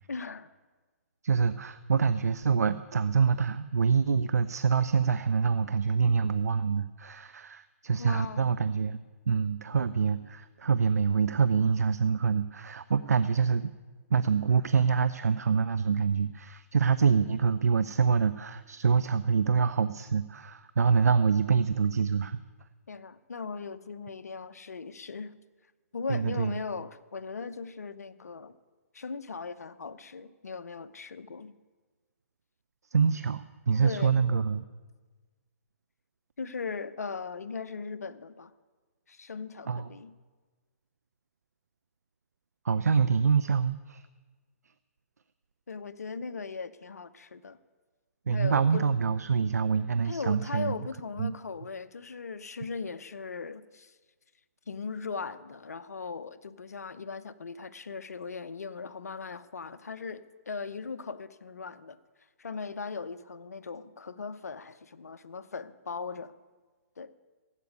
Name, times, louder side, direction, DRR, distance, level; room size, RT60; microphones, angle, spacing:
voice 1, 0.1-0.5 8.0-8.5 22.9-25.3 25.9-28.5 28.9-31.5 33.8-34.2 36.4-38.5 39.1-40.1 45.7-47.6 48.3-48.9 50.0-54.0 54.7-62.0 62.4-66.3 67.0-67.1, left 4 dB, 80° left, 13 dB, 0.8 m, -38 dB
voice 2, 1.2-9.0 9.3-13.7 14.1-22.4 26.1-26.5 32.9-34.6 39.7-39.8 42.6-44.1 48.3-50.7 51.2-51.3, right 6 dB, 80° right, 13 dB, 0.5 m, -26 dB
15.5 x 8.3 x 9.4 m, 1.4 s
hypercardioid pair, 135°, 9 cm